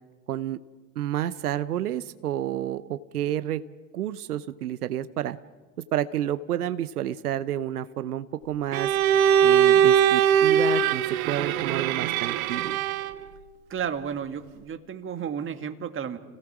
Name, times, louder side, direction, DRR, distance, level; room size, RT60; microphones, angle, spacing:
voice 1, 0.3-0.6 1.0-3.6 3.9-5.4 5.9-8.9 9.4-12.8, right 11 dB, 85° right, 13 dB, 0.8 m, -30 dB
Bowed string instrument, 8.7-13.2, right 9 dB, 70° right, 1.2 m, -21 dB
voice 2, 13.7-16.2, right 8 dB, 25° right, 8 dB, 1.8 m, -32 dB
30.0 x 17.5 x 6.1 m, 1.3 s
hypercardioid pair, 90°, 44 cm